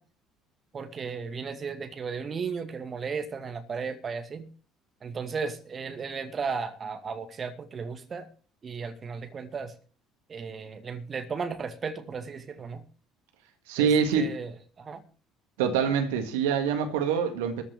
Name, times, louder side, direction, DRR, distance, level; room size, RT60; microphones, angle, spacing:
voice 1, 0.7-4.5 5.0-8.2 8.6-9.7 10.3-12.8 13.8-15.0, right 5 dB, 35° right, 2.2 m, -35 dB
voice 2, 13.7-14.3 15.6-17.6, right 7 dB, 65° right, 1.8 m, -25 dB
14.0 x 7.2 x 8.1 m
figure-of-eight pair, 55°, 0 cm